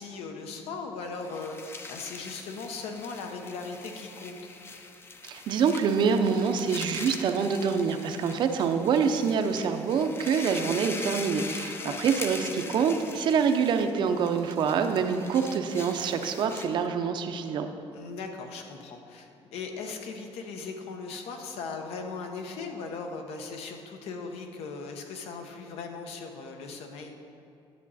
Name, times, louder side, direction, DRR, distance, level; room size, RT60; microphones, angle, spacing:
voice 1, 0.0-4.3 11.8-12.0 17.9-27.1, left 4 dB, 85° left, 4 dB, 1.0 m, -38 dB
sound 1, 1.1-16.9, left 4 dB, 25° left, 0.5 m, -42 dB
voice 2, 5.2-17.7, right 6 dB, 50° right, 7 dB, 0.6 m, -26 dB
10.5 x 7.3 x 4.1 m, 2.6 s
cardioid pair, 170°, 10 cm